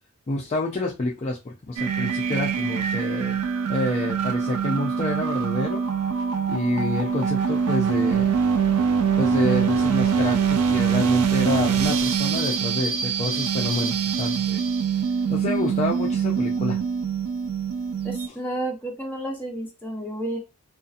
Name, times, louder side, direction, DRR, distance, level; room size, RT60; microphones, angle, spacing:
voice 1, 0.3-3.4 3.7-5.8 6.5-8.3 9.2-14.6 15.3-16.8, left 2 dB, 30° left, -2 dB, 0.4 m, -28 dB
sound 1, 1.8-18.3, right 6 dB, 80° right, 0.3 m, -24 dB
voice 2, 18.0-20.4, right 1 dB, 10° left, -2 dB, 0.7 m, -31 dB
2.6 x 2.4 x 2.4 m, 0.27 s
head